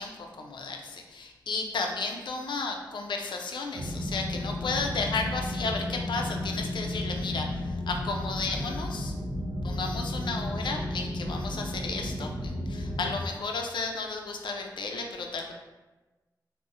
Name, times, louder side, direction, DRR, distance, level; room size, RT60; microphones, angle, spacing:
voice 1, 0.0-9.1 9.6-15.5, left 4 dB, 85° left, 2 dB, 0.4 m, -33 dB
sound 1, 3.7-13.2, left 1 dB, 75° right, 0.6 m, -33 dB
2.6 x 2.0 x 3.6 m, 1.2 s
wide cardioid pair, 85°, 8 cm